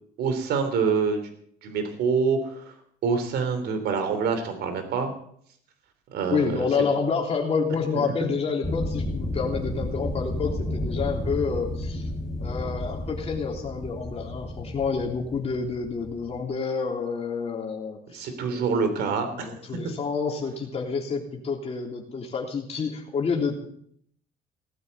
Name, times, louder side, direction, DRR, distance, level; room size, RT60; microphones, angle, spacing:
voice 1, 0.2-1.2 1.6-2.7 3.0-5.1 6.1-6.7 7.9-8.0 18.1-19.5, right 5 dB, 75° right, 7 dB, 3.2 m, -26 dB
voice 2, 6.3-12.1 12.4-18.8 19.3-23.7, left 5 dB, 35° left, 0 dB, 3.4 m, -28 dB
sound 1, 8.6-16.4, left 1 dB, 5° left, 3.4 m, -32 dB
18.5 x 9.4 x 8.3 m, 0.66 s
cardioid pair, 110°, 17 cm